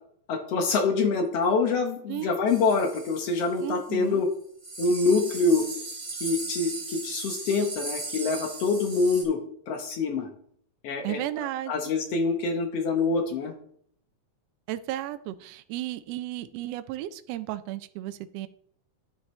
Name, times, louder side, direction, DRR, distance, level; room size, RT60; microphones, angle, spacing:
voice 1, 0.3-4.3 4.8-5.7 6.1-9.4 9.7-10.3 10.8-13.5, left 4 dB, 65° left, 5 dB, 1.8 m, -25 dB
sound 1, 2.5-3.9 4.3-4.4 4.6-9.2, right 3 dB, 25° right, 0.8 m, -37 dB
voice 2, 3.6-4.2 11.0-11.7 14.7-18.5, right 14 dB, 80° right, 11 dB, 1.5 m, -34 dB
11.0 x 7.3 x 3.2 m, 0.65 s
omnidirectional pair, 3.4 m